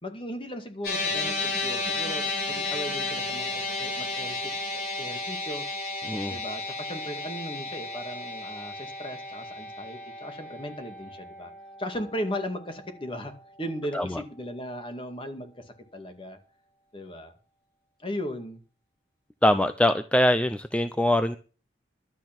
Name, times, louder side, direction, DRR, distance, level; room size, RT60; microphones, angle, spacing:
voice 1, 0.0-4.7 5.0-5.6 6.3-11.5 11.8-13.3 13.6-15.6 15.9-16.4 16.9-17.3 18.0-18.6, equal, 30° left, 6 dB, 2.1 m, -37 dB
sound 1, 0.8-13.3, left 3 dB, 65° left, 7.9 m, -33 dB
voice 2, 6.0-6.4 13.9-14.2 19.4-21.4, left 1 dB, 5° left, 11 dB, 0.5 m, -23 dB
12.0 x 9.0 x 6.0 m, 0.36 s
head